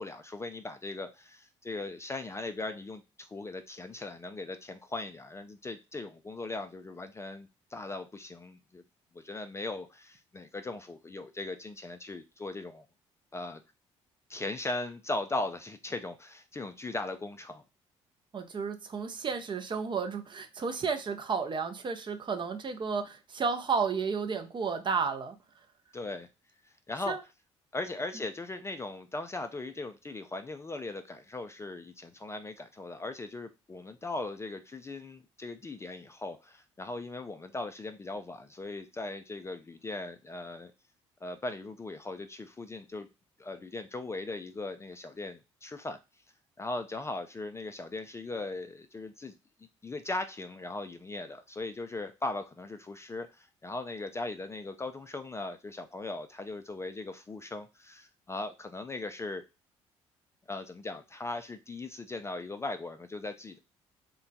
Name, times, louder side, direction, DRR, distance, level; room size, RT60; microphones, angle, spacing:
voice 1, 0.0-8.8 9.1-12.8 13.3-13.6 14.3-17.6 25.9-26.3 26.9-27.2 27.7-40.7 41.2-43.1 43.4-46.0 46.6-49.3 49.8-59.4 60.5-63.6, left 2 dB, 20° left, 0.4 m, -39 dB
voice 2, 18.3-25.4 27.1-27.2, right 5 dB, 35° right, 0.6 m, -32 dB
3.7 x 2.1 x 2.6 m
figure-of-eight pair, 50°, 15 cm